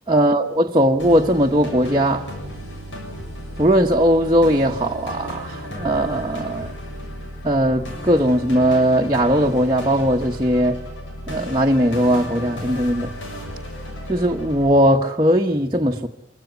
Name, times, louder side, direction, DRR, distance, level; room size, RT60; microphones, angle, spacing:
voice 1, 0.1-2.2 3.6-6.7 7.4-10.8 11.3-13.1 14.1-16.1, equal, 20° right, 1.1 m, -19 dB
sound 1, 1.0-14.7, equal, 90° left, 7.1 m, -34 dB
25.5 x 16.0 x 9.7 m
head